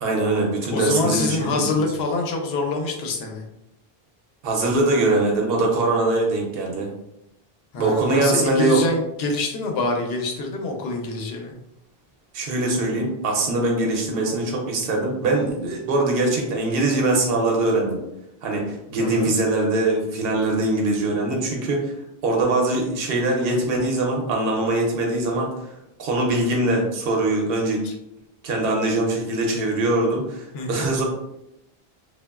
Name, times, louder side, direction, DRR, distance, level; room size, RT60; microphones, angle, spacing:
voice 1, 0.0-1.8 4.4-6.9 7.8-8.8 12.3-18.0 18.4-21.9 22.2-25.7 26.0-27.8 28.4-31.0, right 2 dB, 70° right, 0 dB, 0.8 m, -22 dB
voice 2, 0.7-3.4 7.7-11.5 19.0-19.3 27.8-27.9 30.5-30.9, left 3 dB, 80° left, 2 dB, 0.8 m, -26 dB
2.9 x 2.2 x 2.2 m, 0.85 s
omnidirectional pair, 1.0 m